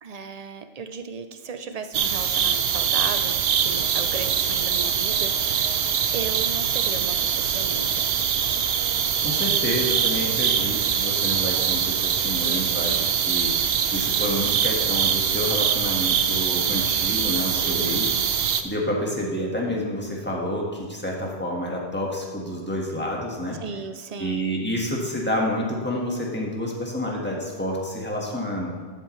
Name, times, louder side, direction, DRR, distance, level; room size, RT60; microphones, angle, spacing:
voice 1, 0.0-5.8 6.1-8.1 12.4-13.1 17.6-18.2 23.6-24.5, right 5 dB, 45° right, 8 dB, 0.6 m, -36 dB
sound 1, 1.9-18.6, right 8 dB, 75° right, 0.9 m, -23 dB
sound 2, 3.6-13.0, right 2 dB, 25° right, 2.6 m, -45 dB
voice 2, 9.2-18.1 18.6-23.6 24.2-28.7, equal, 10° left, -2 dB, 1.5 m, -29 dB
12.0 x 7.6 x 3.2 m, 1.5 s
omnidirectional pair, 1.1 m